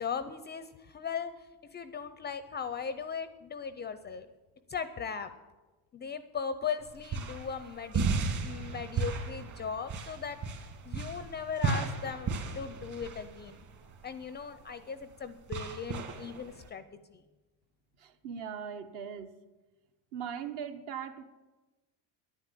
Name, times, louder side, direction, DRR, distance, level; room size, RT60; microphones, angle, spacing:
voice 1, 0.0-1.3 1.7-4.3 4.7-5.3 5.9-8.1 8.4-13.6 14.0-17.2, left 6 dB, 25° left, 12 dB, 0.4 m, -38 dB
sound 1, 6.8-16.7, right 4 dB, 40° right, 2.1 m, -35 dB
voice 2, 18.0-19.4 20.1-21.2, right 7 dB, 55° right, 8 dB, 1.3 m, -39 dB
11.0 x 9.6 x 8.4 m, 1.2 s
cardioid pair, 130°, 47 cm